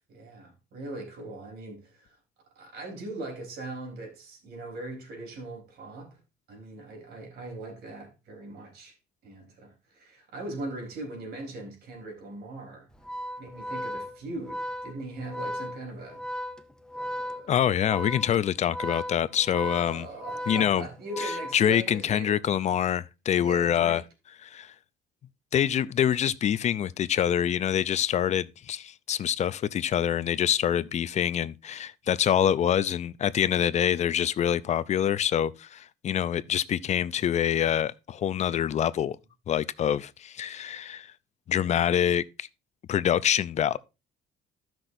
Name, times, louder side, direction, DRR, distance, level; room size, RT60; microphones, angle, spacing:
voice 1, 0.1-2.2 2.6-6.2 6.5-9.0 9.2-12.9 13.4-16.2 16.9-17.6 19.5-22.4 23.3-24.0, right 2 dB, 70° right, 3.7 m, -40 dB
Organ, 12.9-22.1, equal, 5° left, 0.7 m, -36 dB
voice 2, 17.5-20.1 20.5-20.9 21.5-24.0 24.4-24.7 25.5-39.2 39.5-41.1 41.5-42.5 42.9-43.8, left 9 dB, 40° left, 0.5 m, -25 dB
14.5 x 5.9 x 2.6 m
cardioid pair, 110°, 17 cm